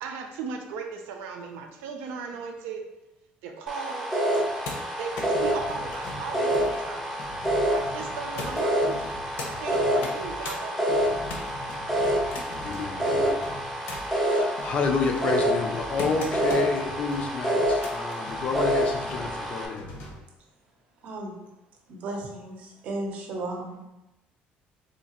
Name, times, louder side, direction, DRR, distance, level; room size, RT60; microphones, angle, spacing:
voice 1, 0.0-2.8 3.4-4.1 5.0-7.2 7.6-9.1 9.4-11.2, right 5 dB, 85° right, 3 dB, 0.5 m, -37 dB
sound 1, 3.7-19.7, equal, ahead, 0.6 m, -27 dB
sound 2, 4.3-7.6 8.4-9.5 9.9-10.6 11.0-12.7 13.3-14.2 14.8-16.8 17.5-18.2 19.3-19.4, left 3 dB, 70° left, 0.8 m, -40 dB
sound 3, 5.3-20.1, left 1 dB, 90° left, 1.2 m, -44 dB
voice 2, 12.6-13.4 14.1-19.9, left 4 dB, 35° left, 3 dB, 0.4 m, -29 dB
voice 3, 21.0-21.3 21.9-23.8, right 2 dB, 45° right, 1 dB, 0.7 m, -35 dB
3.9 x 2.7 x 2.9 m, 0.97 s
cardioid pair, 180°, 3 cm